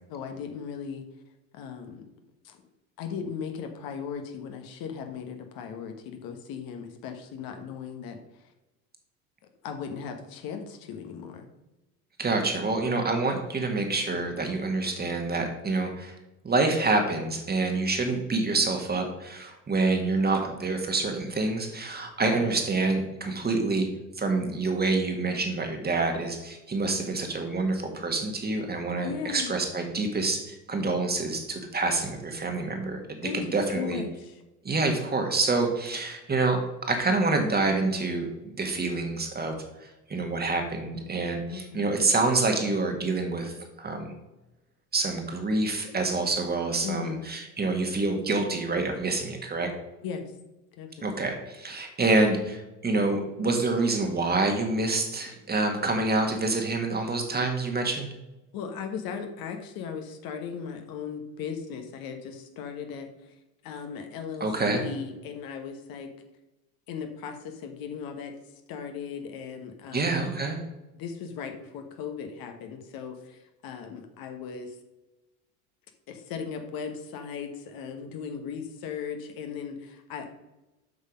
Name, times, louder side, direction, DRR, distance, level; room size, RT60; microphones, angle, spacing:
voice 1, 0.1-1.0 1.5-2.0 2.4-2.6 3.0-8.2 9.6-11.5 29.0-29.5 33.2-33.4 33.7-34.4 41.5-41.8 46.8-47.2 50.0-50.3 50.8-51.2 58.5-63.1 63.6-64.5 64.7-66.1 66.9-68.3 68.7-70.3 70.9-74.8 76.1-80.3, left 6 dB, 50° left, 5 dB, 1.4 m, -37 dB
voice 2, 12.2-16.1 16.4-23.9 24.2-33.0 33.3-34.0 34.6-36.6 36.9-38.3 38.5-39.6 40.1-44.1 44.9-49.7 51.0-58.1 64.4-64.8 69.9-70.6, right 3 dB, 20° right, 4 dB, 1.7 m, -27 dB
8.0 x 5.5 x 5.2 m, 1.0 s
hypercardioid pair, 75°, 46 cm